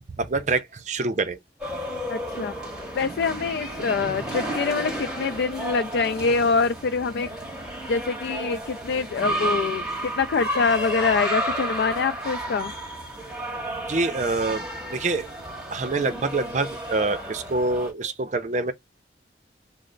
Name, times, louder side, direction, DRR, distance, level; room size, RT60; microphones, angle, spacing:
voice 1, 0.2-1.4 13.6-15.3 15.7-18.7, right 3 dB, 45° right, 0.5 m, -26 dB
sound 1, 1.6-17.9, right 1 dB, 5° right, 1.8 m, -32 dB
voice 2, 2.1-2.5 2.9-7.3 7.9-12.7, left 4 dB, 65° left, 0.3 m, -25 dB
3.2 x 2.0 x 3.7 m
head